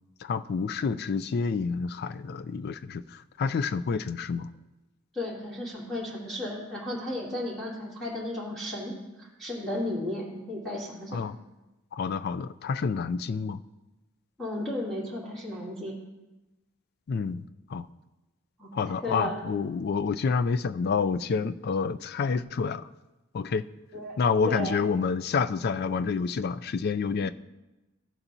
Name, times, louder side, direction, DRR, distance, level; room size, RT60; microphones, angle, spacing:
voice 1, 0.2-4.5 11.1-11.3 11.9-13.6 17.1-17.4 17.7-17.9 18.7-22.9 23.3-23.6 24.2-27.3, left 5 dB, 50° left, 13 dB, 0.3 m, -28 dB
voice 2, 5.1-11.2 14.4-16.0 18.6-19.4 23.9-24.2 24.4-24.8, left 1 dB, ahead, -8 dB, 2.3 m, -34 dB
15.0 x 7.1 x 2.7 m, 1.0 s
head